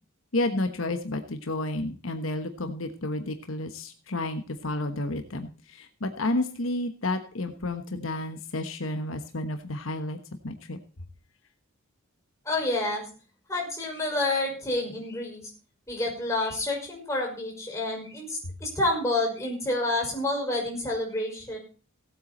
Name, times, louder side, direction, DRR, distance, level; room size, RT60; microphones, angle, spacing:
voice 1, 0.3-10.2 10.4-10.8, left 2 dB, 70° left, 7 dB, 1.2 m, -31 dB
voice 2, 12.5-13.0 13.5-15.4 15.9-21.6, left 2 dB, 15° left, 0 dB, 5.7 m, -29 dB
17.5 x 8.6 x 4.3 m, 0.38 s
head